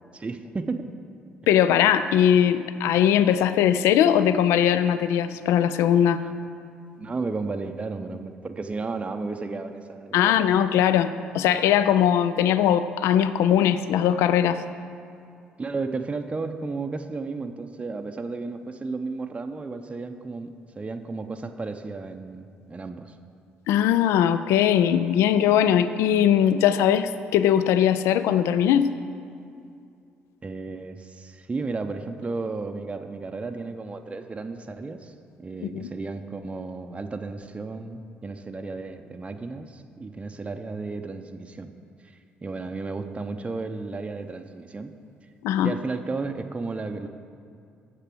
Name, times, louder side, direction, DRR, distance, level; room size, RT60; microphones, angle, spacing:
voice 1, 0.1-0.9 6.2-6.3 7.0-10.5 15.6-23.2 30.4-41.7 42.0-44.9 45.6-47.1, right 3 dB, 25° right, 6 dB, 0.5 m, -33 dB
voice 2, 1.5-6.2 10.1-11.1 11.3-14.6 23.7-28.9 35.6-35.9 45.4-45.7, left 10 dB, 65° left, 12 dB, 0.3 m, -20 dB
7.5 x 6.6 x 6.1 m, 2.4 s
figure-of-eight pair, 45°, 5 cm